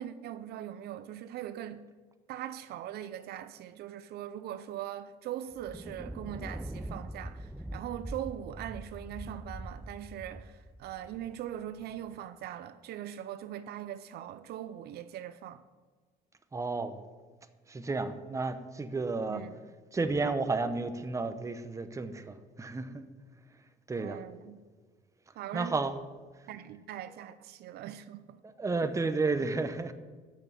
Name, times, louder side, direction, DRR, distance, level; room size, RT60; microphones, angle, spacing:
voice 1, 0.0-1.9 2.3-15.6 19.3-19.6 24.0-24.6 25.3-25.8 26.5-28.4 28.8-28.9, right 11 dB, 70° right, 0.5 m, -41 dB
Thunder, 5.5-12.2, right 1 dB, ahead, 0.4 m, -43 dB
voice 2, 16.5-17.0 17.7-19.4 19.9-23.0 23.9-24.2 25.5-25.9 28.6-29.9, right 3 dB, 20° right, 0.8 m, -32 dB
7.9 x 6.8 x 8.3 m
cardioid pair, 110°, 17 cm